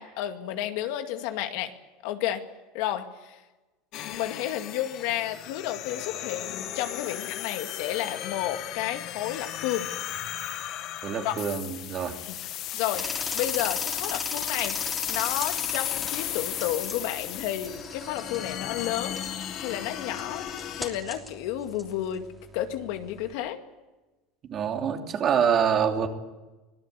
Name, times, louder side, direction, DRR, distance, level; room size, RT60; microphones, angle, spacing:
voice 1, 0.0-1.7 2.0-2.4 2.7-3.4 4.0-9.9 11.2-11.3 12.2-12.4 12.7-13.1 13.3-14.8 15.1-19.2 19.5-20.5 20.8-22.3 22.5-23.6, left 12 dB, 65° left, 6 dB, 2.2 m, -31 dB
sound 1, 3.9-20.9, left 12 dB, 50° left, 1.5 m, -35 dB
voice 2, 11.0-12.2 24.5-26.1, right 7 dB, 35° right, 3 dB, 3.1 m, -25 dB
sound 2, 12.9-23.3, equal, ahead, 3.2 m, -40 dB
25.0 x 18.0 x 8.4 m, 1.1 s
supercardioid pair, 135°, 0 cm